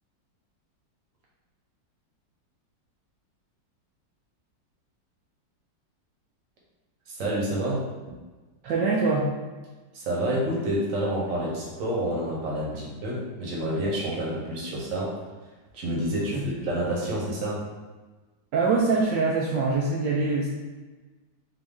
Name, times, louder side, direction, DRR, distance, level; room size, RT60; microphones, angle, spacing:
voice 1, 7.1-8.2 9.9-15.1 15.7-17.6, right 1 dB, 50° right, -4 dB, 1.3 m, -28 dB
voice 2, 8.6-9.3 16.3-16.5 18.5-20.5, right 3 dB, 75° right, -4 dB, 1.2 m, -24 dB
3.9 x 2.8 x 3.5 m, 1.3 s
omnidirectional pair, 2.0 m